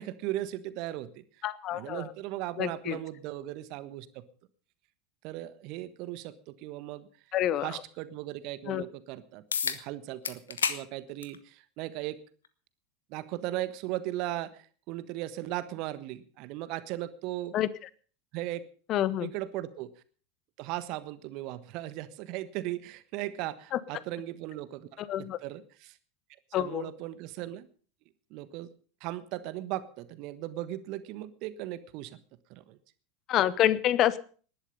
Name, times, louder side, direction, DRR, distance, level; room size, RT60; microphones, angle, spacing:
voice 1, 0.0-1.2 1.7-4.2 5.2-7.1 7.6-12.2 13.1-17.6 18.3-18.7 19.2-19.9 20.6-26.0 26.5-27.7 28.3-28.7 29.0-32.2 32.5-32.8, right 15 dB, 50° right, 14 dB, 1.3 m, -37 dB
voice 2, 1.4-2.1 2.6-3.0 7.3-7.7 8.7-8.8 17.5-17.7 18.9-19.3 23.7-23.8 25.0-25.4 26.5-26.9 33.3-34.2, left 12 dB, 40° left, 18 dB, 1.0 m, -27 dB
sound 1, 9.5-9.8 10.2-10.8 11.2-11.4 12.4-12.5 17.5-17.6, left 6 dB, 75° left, 1.2 m, -30 dB
19.0 x 11.5 x 5.4 m, 0.42 s
figure-of-eight pair, 80°, 0 cm